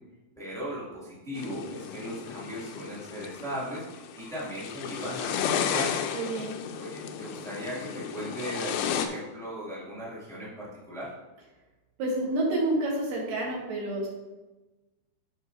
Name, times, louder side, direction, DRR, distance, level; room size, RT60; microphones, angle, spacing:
voice 1, 0.4-3.8 4.2-5.9 6.8-11.1, equal, 5° left, -9 dB, 0.6 m, -37 dB
sound 1, 1.4-9.1, left 8 dB, 85° left, 2.9 m, -33 dB
voice 2, 6.1-6.5 12.0-14.1, right 1 dB, 60° right, -4 dB, 3.0 m, -29 dB
12.0 x 5.8 x 2.7 m, 1.1 s
omnidirectional pair, 5.1 m